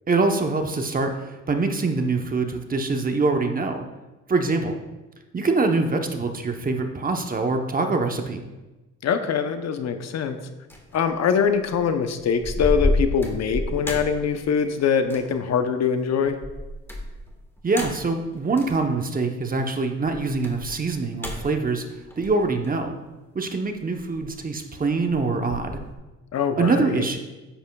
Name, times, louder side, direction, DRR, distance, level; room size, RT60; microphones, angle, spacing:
voice 1, 0.1-3.9 4.3-4.7 5.3-8.4 17.6-21.8 22.2-23.0 23.3-25.8 26.6-27.2, right 3 dB, 30° right, 5 dB, 0.9 m, -24 dB
voice 2, 9.0-10.4 10.9-16.4 26.3-27.0, left 6 dB, 60° left, 8 dB, 0.8 m, -23 dB
sound 1, 10.7-11.0 11.5-11.8 12.2-14.7 15.0-15.4 16.3-18.9 20.0-22.7 23.8-24.7 25.0-25.9, left 1 dB, 10° left, 1.5 m, -30 dB
10.0 x 7.9 x 2.3 m, 1.1 s
cardioid pair, 90°, 30 cm